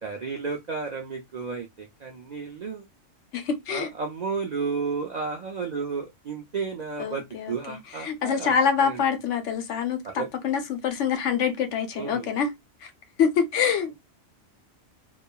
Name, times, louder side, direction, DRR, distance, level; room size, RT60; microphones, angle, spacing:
voice 1, 0.0-2.9 3.7-9.0 10.0-10.3 12.0-12.3, right 5 dB, 65° right, 0.4 m, -32 dB
voice 2, 3.3-3.9 7.0-12.5 13.2-14.0, left 7 dB, 80° left, 1.0 m, -26 dB
2.9 x 2.3 x 2.2 m
omnidirectional pair, 1.3 m